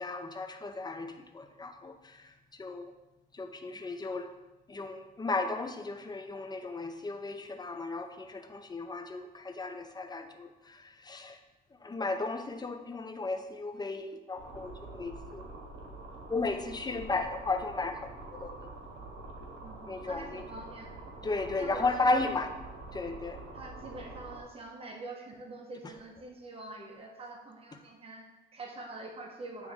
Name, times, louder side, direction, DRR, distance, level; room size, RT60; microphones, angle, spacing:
voice 1, 0.0-2.2 2.6-2.9 3.3-4.3 4.7-11.4 11.8-15.4 16.3-18.0 18.4-18.5 19.9-20.4 21.2-22.5 22.9-23.4, left 3 dB, 20° left, 7 dB, 0.6 m, -34 dB
sound 1, 14.4-24.4, right 2 dB, 70° right, 1.2 m, -46 dB
voice 2, 19.6-21.0 21.6-22.5 23.5-29.7, right 2 dB, 30° right, 0 dB, 1.1 m, -45 dB
9.0 x 3.1 x 3.6 m, 1.0 s
cardioid pair, 90°, 20 cm